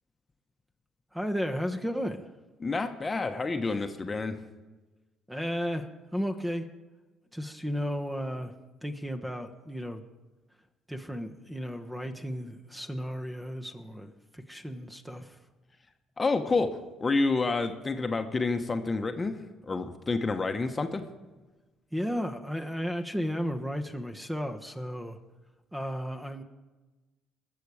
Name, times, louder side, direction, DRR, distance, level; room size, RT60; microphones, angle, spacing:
voice 1, 1.1-2.3 5.3-6.7 7.3-8.6 8.8-10.0 10.9-15.4 21.9-25.2 25.7-26.4, equal, 5° right, 6 dB, 1.2 m, -34 dB
voice 2, 2.6-4.4 16.2-19.4 19.6-21.0, left 3 dB, 30° left, 7 dB, 1.1 m, -29 dB
20.5 x 7.0 x 4.9 m, 1.2 s
hypercardioid pair, 60°, 0 cm